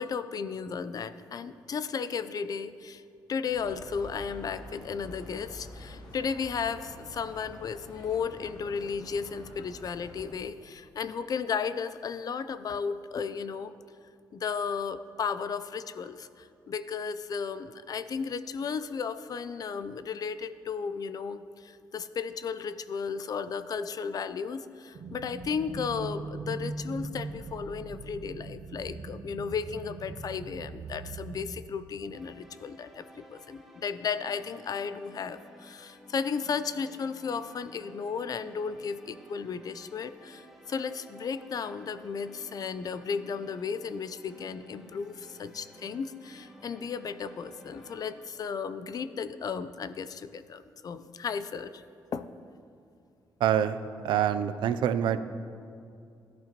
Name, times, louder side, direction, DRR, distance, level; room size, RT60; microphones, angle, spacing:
voice 1, 0.0-3.0 3.3-13.7 14.3-51.8 52.1-52.3, left 6 dB, 55° left, 12 dB, 0.5 m, -34 dB
sound 1, 3.5-10.4, left 1 dB, 80° left, 2.1 m, -47 dB
sound 2, 24.9-31.6, right 3 dB, 65° right, 0.9 m, -40 dB
sound 3, 32.1-48.3, equal, 5° right, 2.3 m, -54 dB
voice 2, 53.4-55.2, right 9 dB, 90° right, 11 dB, 0.5 m, -26 dB
16.0 x 11.5 x 3.0 m, 2.4 s
cardioid pair, 95°, 8 cm